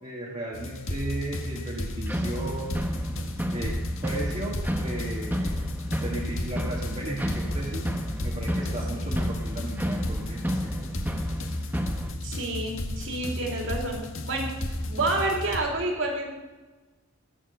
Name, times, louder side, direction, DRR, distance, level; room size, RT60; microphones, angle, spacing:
voice 1, 0.0-2.8 3.5-5.7 6.0-7.9 8.2-10.9, right 1 dB, 30° right, -4 dB, 1.7 m, -35 dB
sound 1, 0.5-15.6, left 1 dB, 65° left, 1.8 m, -33 dB
sound 2, 2.1-12.1, equal, 10° right, 1.0 m, -32 dB
voice 2, 12.2-16.3, right 2 dB, 60° right, 0 dB, 3.3 m, -29 dB
21.0 x 7.5 x 6.8 m, 1.2 s
head